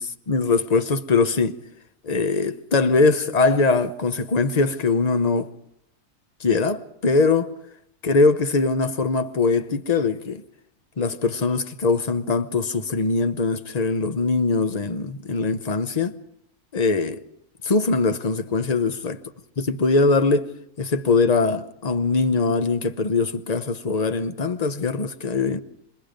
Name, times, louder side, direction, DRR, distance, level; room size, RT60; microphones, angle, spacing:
voice 1, 0.0-1.6 2.0-5.5 6.4-7.5 8.0-10.4 11.0-16.2 16.7-17.2 17.6-19.2 19.6-20.5 20.8-25.6, left 3 dB, 35° left, 0.7 m, -22 dB
28.0 x 20.5 x 5.1 m
omnidirectional pair, 1.7 m